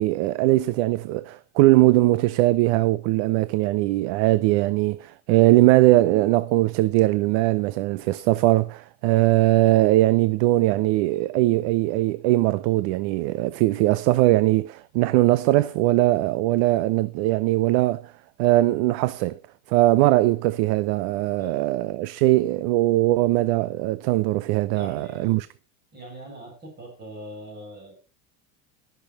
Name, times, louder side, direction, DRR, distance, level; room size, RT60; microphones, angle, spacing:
voice 1, 0.0-18.1 18.4-19.4 19.7-25.5, right 17 dB, 70° right, 0.6 m, -20 dB
voice 2, 21.2-21.8 24.7-25.3 25.9-27.9, right 1 dB, 30° right, 6.2 m, -41 dB
13.5 x 7.0 x 5.5 m
cardioid pair, 145°, 34 cm